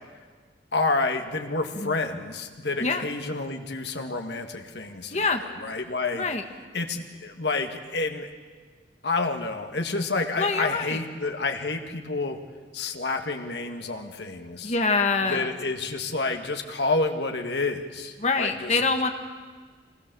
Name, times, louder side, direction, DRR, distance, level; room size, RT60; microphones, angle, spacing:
voice 1, 0.7-6.3 6.7-8.3 9.0-12.4 12.7-14.7 15.3-18.8, left 3 dB, 70° left, 4 dB, 1.8 m, -29 dB
voice 2, 5.1-5.4 6.1-6.4 10.4-11.0 14.6-15.5 18.2-19.1, left 4 dB, 40° left, 5 dB, 1.6 m, -25 dB
25.0 x 20.0 x 6.9 m, 1.5 s
head